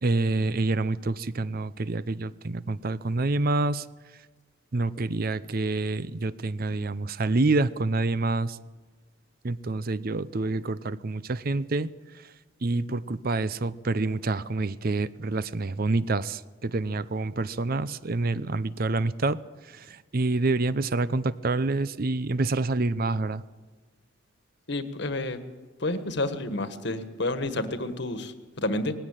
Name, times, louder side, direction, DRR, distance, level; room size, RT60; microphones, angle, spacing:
voice 1, 0.0-3.9 4.7-8.6 9.4-12.3 12.6-23.4, right 2 dB, 45° right, 16 dB, 0.6 m, -27 dB
voice 2, 24.7-25.4 25.8-28.9, left 2 dB, 60° left, 10 dB, 1.5 m, -30 dB
19.0 x 16.0 x 9.0 m, 1.4 s
head